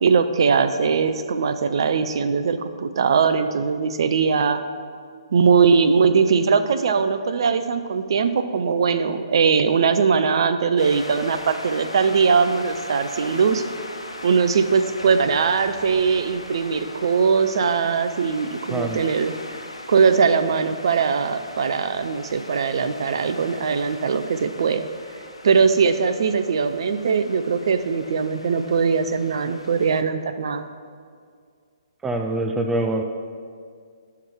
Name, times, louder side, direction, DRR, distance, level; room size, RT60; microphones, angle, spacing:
voice 1, 0.0-4.6 5.3-13.6 14.2-19.3 19.9-24.9 25.4-30.6, right 5 dB, 60° right, 10 dB, 0.6 m, -20 dB
sound 1, 10.8-30.0, left 1 dB, 90° left, 1.0 m, -39 dB
voice 2, 18.7-19.0 32.0-33.0, right 1 dB, 10° right, 4 dB, 0.5 m, -24 dB
11.0 x 5.8 x 4.7 m, 2.1 s
figure-of-eight pair, 130°, 3 cm